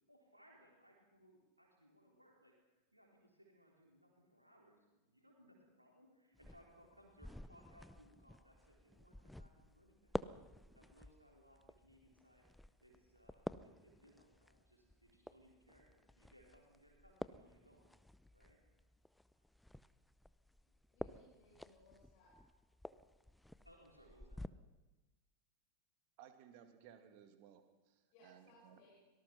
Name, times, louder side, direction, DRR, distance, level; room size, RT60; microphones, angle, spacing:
voice 1, 0.1-10.1 10.7-12.5 12.8-17.8 18.3-18.6 23.6-24.5, equal, 90° right, -1 dB, 3.9 m, -66 dB
sound 1, 6.3-24.5, left 1 dB, 5° left, 0.6 m, -52 dB
voice 2, 20.9-22.4 28.1-28.9, left 1 dB, 45° left, -4 dB, 7.4 m, -66 dB
voice 3, 26.2-28.9, right 9 dB, 45° right, 7 dB, 2.5 m, -61 dB
24.5 x 18.5 x 6.0 m, 1.1 s
figure-of-eight pair, 90°, 0 cm